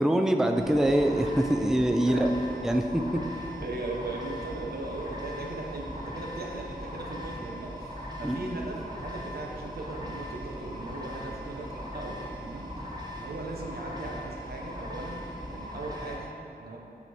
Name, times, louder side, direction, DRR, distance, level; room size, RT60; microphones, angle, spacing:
voice 1, 0.0-2.3 2.6-3.0 8.2-8.4, right 1 dB, 5° right, 5 dB, 0.4 m, -24 dB
sound 1, 0.5-16.2, equal, 25° right, 1.0 m, -39 dB
voice 2, 3.6-12.8 13.2-16.8, right 2 dB, 85° right, -1 dB, 0.8 m, -38 dB
7.5 x 4.1 x 4.2 m, 2.8 s
wide cardioid pair, 70°, 16 cm